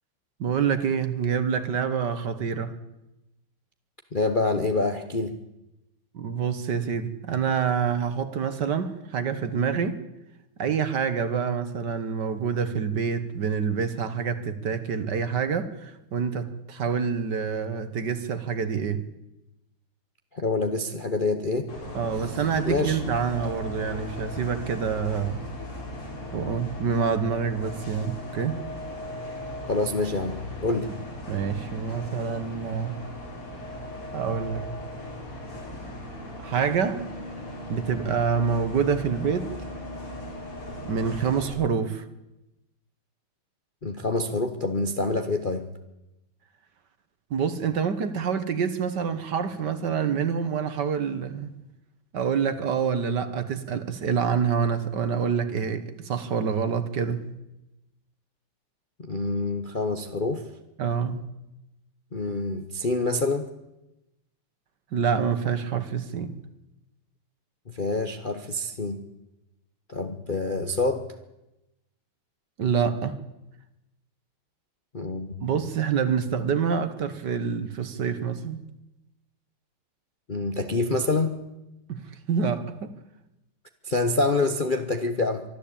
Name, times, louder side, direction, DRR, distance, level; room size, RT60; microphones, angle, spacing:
voice 1, 0.4-2.8 6.1-10.0 10.6-19.0 21.9-25.4 26.3-28.6 31.3-33.0 34.1-34.6 36.4-37.0 37.7-39.5 40.8-42.0 47.3-51.6 52.1-57.3 60.8-61.3 64.9-66.4 72.6-73.2 75.4-78.6 81.9-82.9, right 6 dB, 55° right, 1.7 m, -27 dB
voice 2, 4.1-5.4 20.3-21.7 22.6-23.0 29.7-30.9 43.8-45.7 59.0-60.5 62.1-63.5 67.7-69.0 69.9-71.1 74.9-75.4 80.3-81.4 83.8-85.4, left 2 dB, 35° left, 0.8 m, -26 dB
Bus, 21.7-41.5, left 1 dB, 75° left, 4.9 m, -37 dB
23.5 x 13.0 x 8.7 m
omnidirectional pair, 2.4 m